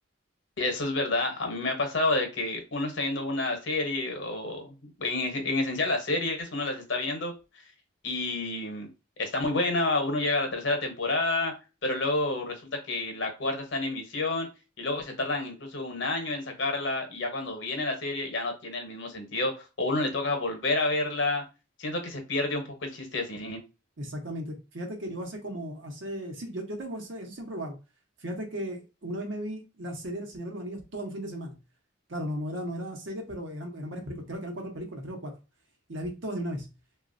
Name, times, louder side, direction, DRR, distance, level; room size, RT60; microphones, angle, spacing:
voice 1, 0.6-7.3 8.0-8.9 9.2-11.5 11.8-14.5 14.8-21.4 21.8-23.6, left 2 dB, 65° left, 0.9 m, -29 dB
voice 2, 24.0-27.8 28.2-31.6 32.1-35.3 35.9-36.7, equal, 70° right, 0.9 m, -36 dB
3.0 x 2.3 x 2.5 m
head